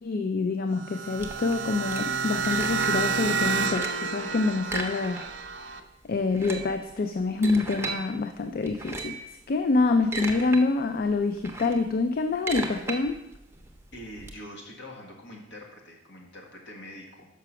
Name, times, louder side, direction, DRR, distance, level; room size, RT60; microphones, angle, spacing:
voice 1, 0.0-5.8 6.0-9.2 9.5-13.2, left 3 dB, 50° left, 7 dB, 0.4 m, -26 dB
sound 1, 0.7-5.8, right 5 dB, 70° right, 0.6 m, -30 dB
sound 2, 1.2-3.1 3.4-4.1 4.6-5.5 5.8-5.9 6.2-8.0 8.6-9.3 9.8-10.6 11.0-14.3, right 3 dB, 15° right, 0.8 m, -36 dB
voice 2, 13.9-17.3, left 1 dB, 65° left, 0 dB, 1.8 m, -44 dB
6.0 x 5.8 x 5.9 m, 0.87 s
head